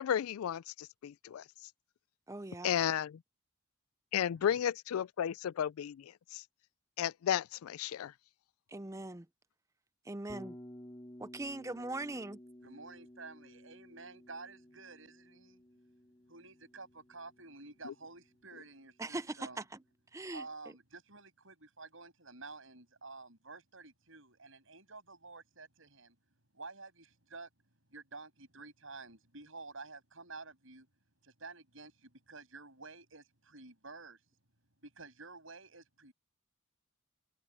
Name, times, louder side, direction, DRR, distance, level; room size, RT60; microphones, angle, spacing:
voice 1, 0.0-0.6 1.0-1.4 2.6-3.2 4.1-6.4 7.0-8.1 17.8-17.9, left 9 dB, 85° left, 0.3 m, -33 dB
voice 2, 2.3-2.8 8.7-9.3 10.1-10.5 11.2-12.4 19.0-19.8 20.1-20.5, right 2 dB, 15° right, 0.5 m, -41 dB
Bass guitar, 10.3-18.4, equal, 20° left, 3.5 m, -54 dB
voice 3, 12.6-15.6 16.3-19.6 20.3-26.2 26.5-27.5 27.9-30.9 31.2-34.2 34.8-36.1, right 3 dB, 65° right, 7.2 m, -51 dB
head